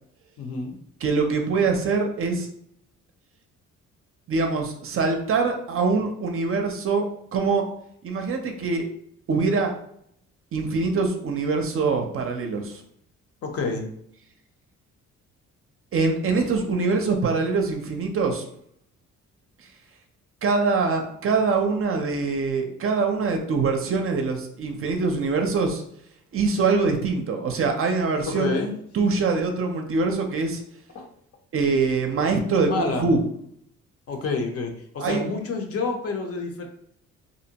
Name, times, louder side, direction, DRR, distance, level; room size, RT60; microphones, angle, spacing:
voice 1, 0.4-0.8 13.4-13.9 28.3-28.7 30.9-31.1 32.7-33.1 34.1-36.7, left 4 dB, 50° left, 3 dB, 0.6 m, -28 dB
voice 2, 1.0-2.5 4.3-7.0 7.3-7.7 8.0-8.9 9.3-9.7 10.5-12.8 15.9-18.5 20.4-25.8 26.3-28.5 28.9-30.6 31.5-33.2 35.0-35.2, right 4 dB, 45° right, 4 dB, 0.5 m, -24 dB
2.6 x 2.1 x 2.7 m, 0.69 s
cardioid pair, 90°, 30 cm